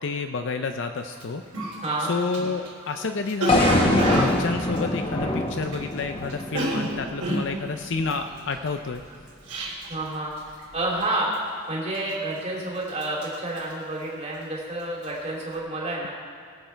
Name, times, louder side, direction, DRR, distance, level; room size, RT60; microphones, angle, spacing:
voice 1, 0.0-1.4 2.1-9.0, left 4 dB, 55° left, 6 dB, 0.5 m, -29 dB
Cough, 1.1-1.2 1.5-6.0 6.2-10.1 10.4-10.7 11.0-11.5 11.9-12.5 12.8-14.5 14.8-15.1, right 1 dB, 80° right, 3.7 m, -30 dB
voice 2, 1.8-2.1 9.9-10.3 10.7-11.3 11.7-16.1, right 2 dB, 30° right, -4 dB, 2.8 m, -29 dB
sound 1, 3.5-7.6, left 1 dB, 25° left, 0.9 m, -24 dB
21.5 x 7.9 x 4.5 m, 2.1 s
head